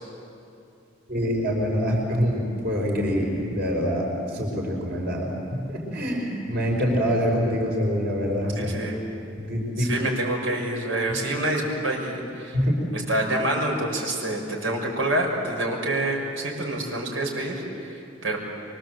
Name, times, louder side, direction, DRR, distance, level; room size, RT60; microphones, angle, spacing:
voice 1, 1.1-5.4 5.7-8.7 9.4-10.1 11.1-11.2 12.5-12.8, equal, 55° right, -1 dB, 5.2 m, -25 dB
voice 2, 8.6-9.0 9.8-12.6 12.9-18.4, right 1 dB, 85° right, 0 dB, 5.6 m, -27 dB
25.0 x 24.5 x 7.9 m, 2.6 s
head